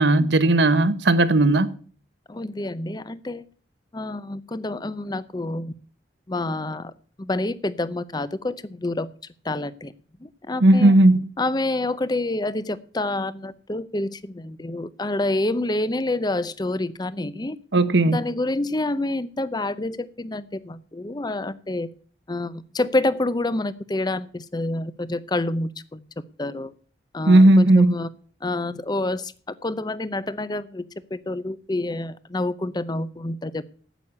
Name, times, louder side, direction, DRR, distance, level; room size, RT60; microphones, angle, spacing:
voice 1, 0.0-1.7 10.6-11.2 17.7-18.2 27.3-27.9, right 2 dB, 65° right, 1.0 m, -16 dB
voice 2, 2.3-3.4 3.9-5.7 6.3-6.9 7.2-9.1 9.4-9.9 10.2-10.9 11.4-17.6 18.0-21.9 22.3-26.1 26.4-26.7 27.1-28.1 28.4-33.8, left 2 dB, 20° left, 0.6 m, -28 dB
9.1 x 8.3 x 8.5 m
head